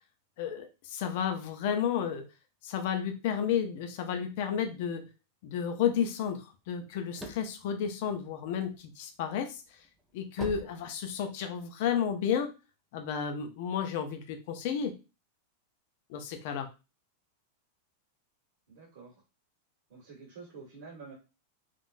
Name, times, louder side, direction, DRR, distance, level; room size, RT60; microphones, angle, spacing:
voice 1, 0.4-2.2 2.6-5.0 5.4-9.6 10.1-12.5 12.9-15.0 16.1-16.7, left 8 dB, 50° left, 5 dB, 0.5 m, -32 dB
sound 1, 6.7-8.9 9.3-11.6, right 1 dB, 5° right, 0.5 m, -44 dB
voice 2, 18.7-19.2 19.9-21.1, right 4 dB, 60° right, -4 dB, 1.6 m, -48 dB
3.7 x 2.4 x 2.5 m, 0.29 s
supercardioid pair, 170°, 0 cm